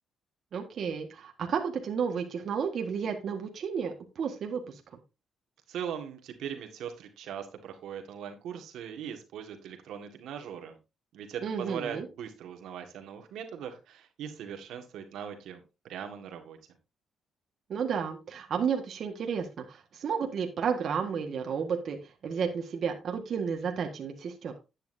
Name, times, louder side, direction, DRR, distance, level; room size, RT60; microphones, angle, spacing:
voice 1, 0.5-4.7 11.4-12.0 17.7-22.0 22.2-24.5, right 6 dB, 60° right, 3 dB, 1.6 m, -32 dB
voice 2, 5.7-10.8 11.1-16.6, right 8 dB, 80° right, 6 dB, 1.7 m, -40 dB
11.0 x 9.0 x 2.7 m, 0.27 s
cardioid pair, 90°, 0 cm